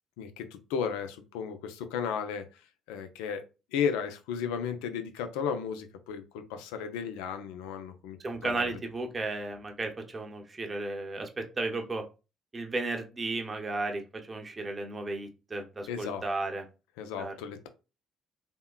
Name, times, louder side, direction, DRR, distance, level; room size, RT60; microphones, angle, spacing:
voice 1, 0.2-2.6 2.9-3.4 3.7-8.2 8.4-8.7 15.9-16.2 17.0-17.7, left 7 dB, 85° left, 8 dB, 0.4 m, -34 dB
voice 2, 8.2-12.0 12.5-16.6 17.2-17.3, right 2 dB, 30° right, 4 dB, 0.7 m, -34 dB
3.5 x 2.2 x 2.3 m, 0.30 s
supercardioid pair, 60°, 0 cm